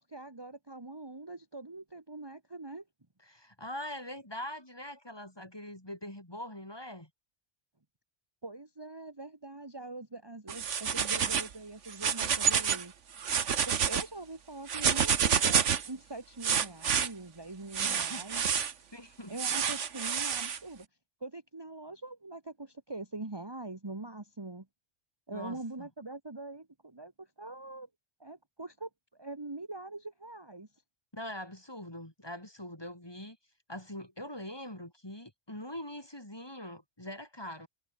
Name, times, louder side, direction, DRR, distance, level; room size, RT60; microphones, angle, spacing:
voice 1, 0.0-2.8 8.4-12.9 13.7-15.6 15.8-18.4 19.3-20.9 21.2-24.7 25.3-27.9 28.2-30.7, right 2 dB, 20° right, 1.6 m, -43 dB
voice 2, 3.2-7.1 17.8-18.3 18.9-19.4 25.3-25.9 31.1-33.4 33.7-37.7, left 1 dB, 20° left, 4.0 m, -43 dB
sound 1, 10.5-11.5 11.9-12.8 13.2-14.0 14.7-15.9 16.4-17.1 17.7-18.7 19.4-20.6, right 7 dB, 80° right, 1.6 m, -28 dB
omnidirectional pair, 1.2 m